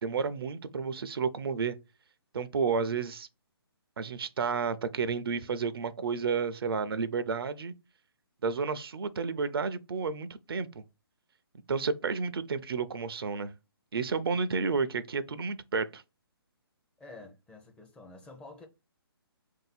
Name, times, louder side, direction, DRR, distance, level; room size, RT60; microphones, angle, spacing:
voice 1, 0.0-1.8 2.3-3.3 4.0-7.7 8.4-10.8 11.7-13.5 13.9-16.0, right 5 dB, 70° right, 0.5 m, -31 dB
voice 2, 17.0-18.7, left 2 dB, 10° left, 0.5 m, -49 dB
3.8 x 2.7 x 4.0 m
hypercardioid pair, 145°, 13 cm